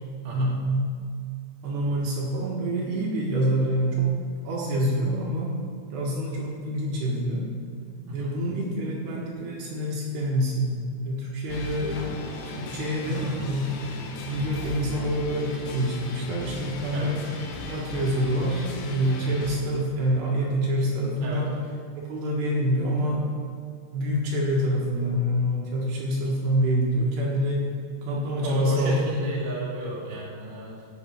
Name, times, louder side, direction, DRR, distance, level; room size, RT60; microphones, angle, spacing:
voice 1, 0.3-0.8 1.6-4.1 4.4-5.5 5.9-7.5 8.1-10.8 11.0-12.0 12.5-13.7 14.2-17.2 17.7-21.5 22.0-23.3 23.9-27.7 28.0-29.0, equal, 65° right, -4 dB, 3.2 m, -26 dB
sound 1, 11.5-19.6, left 3 dB, 80° left, 3.6 m, -36 dB
voice 2, 13.0-13.4 16.9-17.1 21.2-21.4 28.4-30.7, equal, 35° right, -5 dB, 2.1 m, -32 dB
16.0 x 7.8 x 4.6 m, 2.1 s
omnidirectional pair, 5.7 m